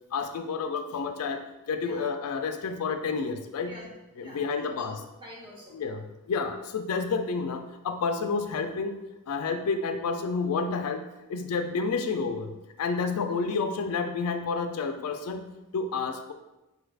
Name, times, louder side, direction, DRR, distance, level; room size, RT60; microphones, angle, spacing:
voice 1, 0.1-3.7 4.2-5.0 5.7-9.0 9.3-11.0 11.3-12.5 12.8-15.5 15.7-16.3, left 4 dB, 85° left, 7 dB, 0.4 m, -30 dB
voice 2, 3.6-4.9 5.2-5.7, left 1 dB, 20° right, -4 dB, 0.9 m, -46 dB
4.5 x 2.4 x 3.2 m, 1.0 s
head